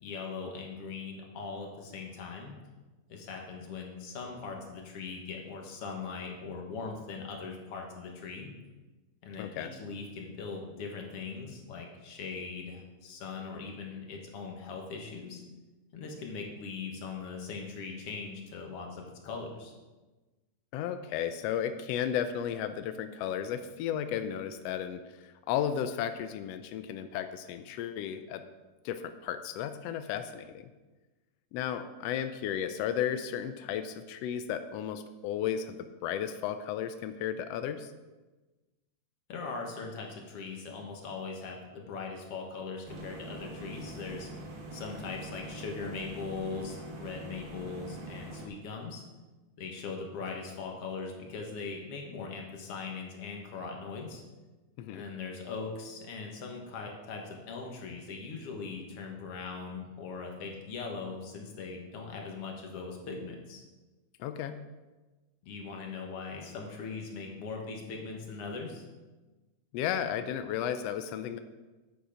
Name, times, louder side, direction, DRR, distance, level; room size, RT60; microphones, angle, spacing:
voice 1, 0.0-2.5 3.1-8.5 9.2-15.4 15.9-19.7 39.3-44.3 44.7-49.0 49.6-54.2 54.9-63.6 65.4-68.8, left 4 dB, 55° left, 1 dB, 2.2 m, -40 dB
voice 2, 9.4-9.7 20.7-28.4 28.8-30.6 31.5-35.8 36.0-37.9 54.8-55.0 64.2-64.6 69.7-71.4, left 9 dB, 90° left, 9 dB, 1.4 m, -34 dB
sound 1, 42.9-48.5, right 2 dB, 50° right, 1.4 m, -44 dB
8.9 x 8.1 x 5.0 m, 1.2 s
omnidirectional pair, 3.5 m